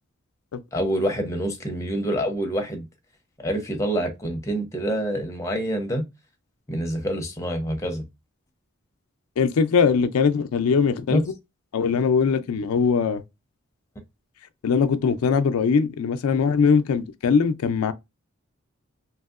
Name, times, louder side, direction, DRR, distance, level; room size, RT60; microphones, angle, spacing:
voice 1, 0.7-2.9 3.4-6.0 6.7-8.0 11.1-11.2, equal, 15° left, 0.6 m, -26 dB
voice 2, 9.4-11.2 11.7-13.2 14.6-17.9, left 5 dB, 85° left, 0.4 m, -21 dB
2.9 x 2.7 x 2.4 m
head